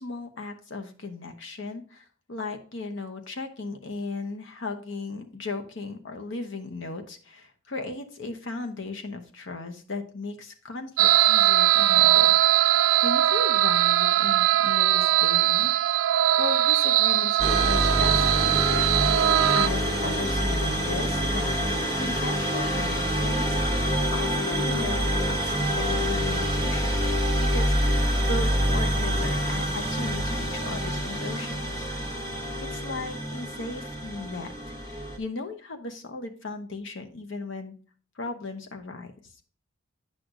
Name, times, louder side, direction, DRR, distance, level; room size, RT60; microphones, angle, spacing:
voice 1, 0.0-12.3 12.7-15.7 16.4-18.6 19.5-23.6 24.1-27.0 27.3-31.9 32.3-34.5 34.8-37.7 38.2-39.1, left 3 dB, 60° left, 6 dB, 0.9 m, -36 dB
sound 1, 11.0-19.7, right 13 dB, 85° right, 0.3 m, -21 dB
sound 2, 17.4-35.2, equal, 15° left, 1.1 m, -26 dB
9.2 x 6.3 x 2.5 m, 0.41 s
head